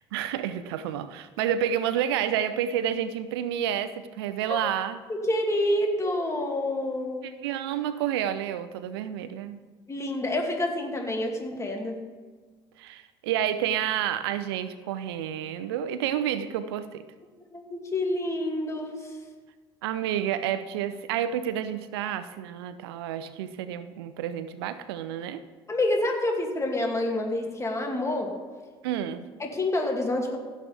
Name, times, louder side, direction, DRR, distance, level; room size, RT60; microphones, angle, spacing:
voice 1, 0.0-5.0 7.2-9.6 12.8-17.0 19.8-25.4 28.8-29.2, right 10 dB, 85° right, 12 dB, 0.6 m, -30 dB
voice 2, 5.1-7.2 9.9-11.9 17.5-19.0 25.7-28.3 29.4-30.4, left 1 dB, 25° left, 1 dB, 2.5 m, -28 dB
16.0 x 7.7 x 3.5 m, 1.4 s
hypercardioid pair, 70°, 13 cm